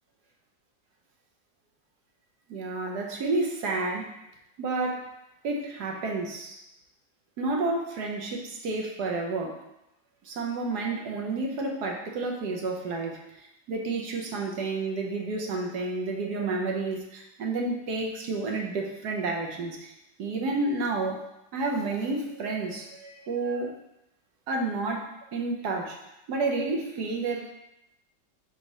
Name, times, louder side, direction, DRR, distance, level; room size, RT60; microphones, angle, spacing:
voice 1, 2.5-4.1 4.6-5.1 5.4-6.6 7.4-9.6 10.2-13.2 13.7-19.9 20.2-21.3 21.5-23.7 24.5-26.0 26.3-27.5, right 3 dB, 70° right, 1 dB, 1.4 m, -30 dB
4.9 x 4.1 x 5.3 m, 0.87 s
omnidirectional pair, 1.8 m